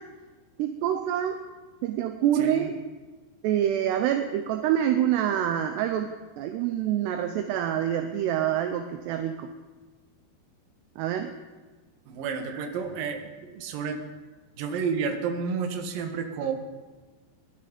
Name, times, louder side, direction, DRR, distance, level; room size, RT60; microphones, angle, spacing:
voice 1, 0.6-1.4 1.8-2.8 3.4-9.5 11.0-11.3 12.5-12.7, right 10 dB, 75° right, 7 dB, 2.7 m, -26 dB
voice 2, 2.4-2.7 12.1-14.0 14.6-16.5, right 6 dB, 60° right, 4 dB, 2.9 m, -31 dB
20.0 x 12.0 x 5.2 m, 1.3 s
omnidirectional pair, 5.2 m